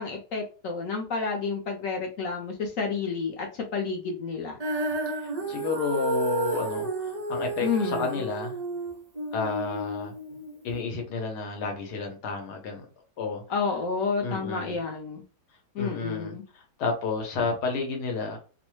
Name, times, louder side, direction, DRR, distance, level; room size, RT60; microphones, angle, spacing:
voice 1, 0.0-4.6 7.6-8.2 13.5-15.2 15.7-16.4, left 5 dB, 60° left, 1 dB, 1.0 m, -30 dB
Female singing, 4.6-10.8, right 2 dB, 55° right, 0.4 m, -31 dB
voice 2, 5.2-8.5 9.3-10.1 10.6-12.9 13.2-13.4 14.2-14.8 15.8-18.4, left 4 dB, 80° left, 2 dB, 1.3 m, -31 dB
3.0 x 2.1 x 3.0 m, 0.35 s
omnidirectional pair, 1.8 m